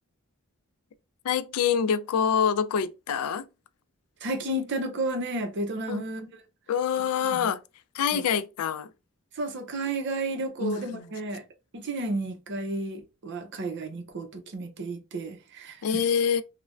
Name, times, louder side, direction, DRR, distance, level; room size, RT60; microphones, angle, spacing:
voice 1, 1.2-3.5 5.9-6.0 6.7-7.6 7.9-8.9 10.6-11.1 15.8-16.4, left 7 dB, 80° left, 0.4 m, -26 dB
voice 2, 4.2-6.4 7.3-7.5 8.1-8.2 9.4-11.4 11.7-16.0, right 2 dB, 55° right, 0.6 m, -32 dB
3.2 x 2.1 x 2.4 m
head